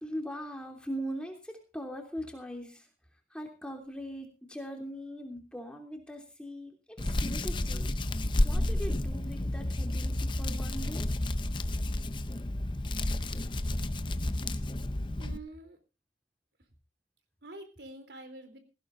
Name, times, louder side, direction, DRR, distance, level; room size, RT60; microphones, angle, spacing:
voice 1, 0.0-8.0 8.4-11.1, equal, 5° left, 2 dB, 3.0 m, -41 dB
Hands, 7.0-15.4, left 1 dB, 25° left, 0.7 m, -31 dB
voice 2, 15.2-15.8 17.4-18.6, right 2 dB, 75° right, 8 dB, 3.4 m, -46 dB
18.5 x 15.5 x 2.6 m, 0.32 s
head